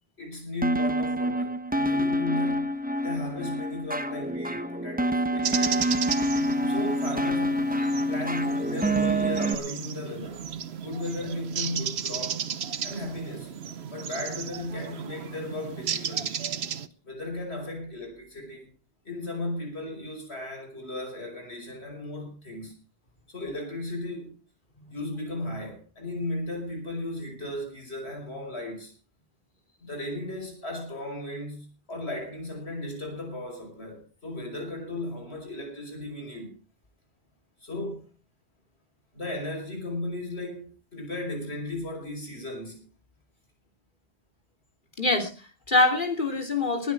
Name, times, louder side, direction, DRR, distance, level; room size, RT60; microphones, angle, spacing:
voice 1, 0.2-2.7 3.0-6.0 6.7-7.7 8.1-10.4 10.8-12.5 12.8-13.5 13.9-16.3 17.0-18.7 19.1-22.7 23.3-24.4 24.9-28.9 29.8-36.6 37.6-38.1 39.1-42.8, left 1 dB, 85° left, 5.7 m, -35 dB
sound 1, 0.6-9.5, equal, 10° right, 0.8 m, -27 dB
sound 2, 5.4-16.9, right 7 dB, 80° right, 1.2 m, -34 dB
voice 2, 45.0-46.9, left 2 dB, 50° left, 3.2 m, -24 dB
20.5 x 9.1 x 4.8 m
omnidirectional pair, 1.1 m